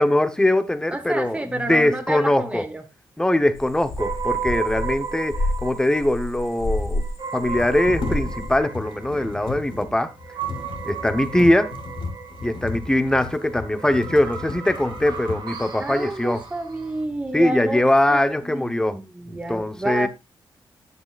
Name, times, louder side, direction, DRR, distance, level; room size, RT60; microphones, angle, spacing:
voice 1, 0.0-2.6 3.2-7.0 7.3-10.1 10.8-11.7 12.4-16.4 17.3-19.0 19.3-20.1, left 1 dB, 10° left, 0.9 m, -21 dB
voice 2, 0.9-2.8 15.8-17.8 18.1-20.1, right 2 dB, 15° right, 1.1 m, -30 dB
sound 1, 3.6-7.1 7.4-8.6, left 1 dB, 40° left, 1.9 m, -29 dB
sound 2, 4.0-17.0, right 6 dB, 70° right, 2.5 m, -35 dB
sound 3, 7.3-15.7 16.4-16.5 16.9-17.6 17.9-18.5, left 4 dB, 75° left, 3.4 m, -35 dB
11.0 x 8.8 x 2.5 m
wide cardioid pair, 150°, 8 cm